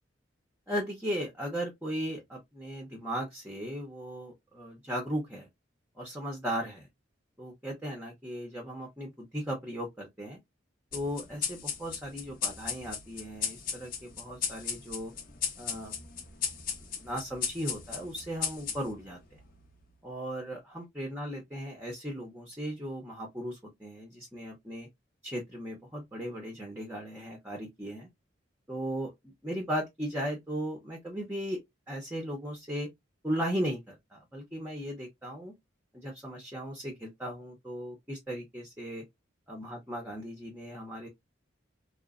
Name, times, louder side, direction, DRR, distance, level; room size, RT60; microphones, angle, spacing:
voice 1, 0.7-5.5 6.0-6.9 7.4-10.4 10.9-15.1 15.6-16.0 17.0-19.2 20.0-24.9 25.2-28.1 28.7-31.6 31.9-32.9 33.2-35.5 35.9-39.0 39.5-41.1, equal, 10° right, 0.6 m, -37 dB
sound 1, 10.9-19.8, left 7 dB, 45° left, 0.6 m, -37 dB
2.9 x 2.0 x 2.3 m
head